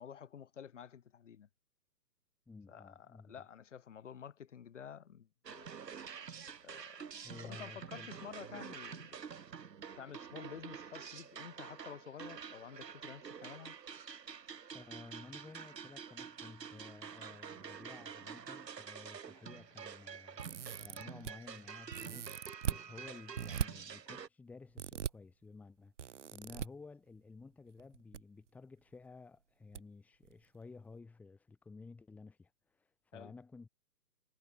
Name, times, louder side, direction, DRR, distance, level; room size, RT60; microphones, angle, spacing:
voice 1, 0.0-1.5 2.7-5.7 6.6-9.2 9.9-13.8 33.1-33.3, left 8 dB, 45° left, 4.3 m, -51 dB
voice 2, 2.5-3.4 7.2-8.1 14.7-20.4 20.8-22.4 22.7-33.7, left 4 dB, 5° left, 3.3 m, -54 dB
sound 1, 5.4-24.3, right 7 dB, 75° right, 2.8 m, -48 dB
sound 2, 20.4-21.3 21.9-22.8 23.4-23.7 24.8-25.1 26.0-26.7 27.8-28.2 28.5-28.6 29.7-29.8 30.2-30.3, right 8 dB, 45° right, 1.4 m, -39 dB
hypercardioid pair, 170°, 49 cm